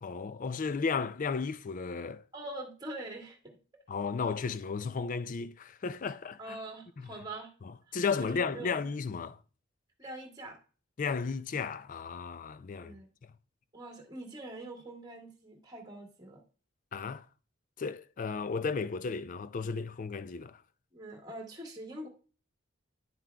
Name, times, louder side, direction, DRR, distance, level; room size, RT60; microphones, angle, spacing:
voice 1, 0.0-2.2 3.9-6.6 7.0-7.1 7.9-9.4 11.0-12.9 13.2-13.3 16.9-17.2 17.8-20.6, left 5 dB, 40° left, 0.4 m, -34 dB
voice 2, 2.3-3.6 6.4-7.5 8.2-8.7 10.0-10.6 12.8-13.1 13.7-16.4 20.9-22.1, right 2 dB, 20° right, 1.6 m, -44 dB
10.0 x 7.4 x 2.3 m
head